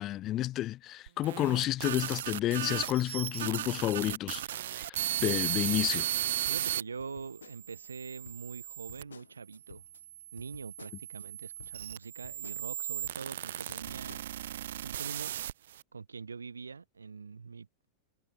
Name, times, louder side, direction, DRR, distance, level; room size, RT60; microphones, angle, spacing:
voice 1, 0.0-4.4 4.7-6.1, left 14 dB, 35° left, 0.8 m, -31 dB
sound 1, 1.1-6.8 7.5-9.0 9.8-15.8, right 12 dB, 60° right, 1.7 m, -36 dB
voice 2, 6.4-9.8 10.3-14.2 14.8-15.3 15.9-17.7, right 5 dB, 75° right, 2.9 m, -44 dB
sound 2, 7.0-7.9 8.2-10.0 10.4-11.3 11.6-13.3 13.7-14.3, left 6 dB, 70° left, 4.4 m, -54 dB
figure-of-eight pair, 90°, 0 cm